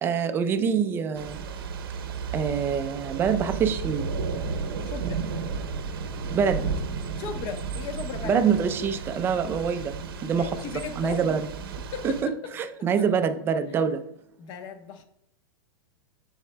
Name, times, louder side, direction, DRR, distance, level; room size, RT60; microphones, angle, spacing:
voice 1, 0.0-1.4 2.3-4.1 6.3-6.7 8.2-10.0 10.2-11.5 12.0-14.0, right 6 dB, 20° right, 10 dB, 0.5 m, -25 dB
Thunder / Rain, 1.1-12.2, right 5 dB, 80° right, 0.9 m, -33 dB
voice 2, 4.8-5.2 7.2-8.4 10.4-11.3 11.9-12.3 14.4-15.0, left 6 dB, 35° left, 7 dB, 0.9 m, -36 dB
8.3 x 7.1 x 2.2 m, 0.75 s
supercardioid pair, 145°, 12 cm